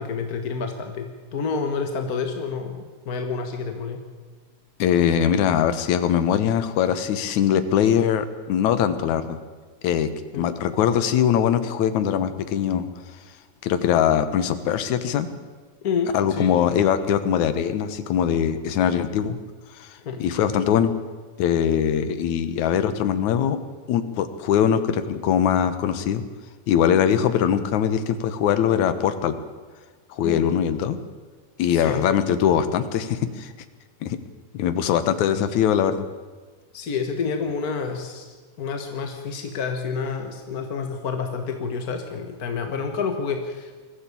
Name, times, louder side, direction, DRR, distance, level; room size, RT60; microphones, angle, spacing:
voice 1, 0.0-4.0 10.3-10.5 15.8-16.5 20.0-20.2 30.2-30.5 31.7-32.0 36.7-43.8, left 5 dB, 45° left, 5 dB, 1.3 m, -29 dB
voice 2, 4.8-9.4 9.8-12.9 13.6-15.3 16.1-19.4 19.7-20.9 21.4-23.6 23.9-26.2 26.7-29.4 30.1-31.0 31.6-33.5 34.0-34.2 34.5-36.1, left 9 dB, 75° left, 11 dB, 2.5 m, -22 dB
22.0 x 14.5 x 8.5 m, 1.4 s
omnidirectional pair, 3.5 m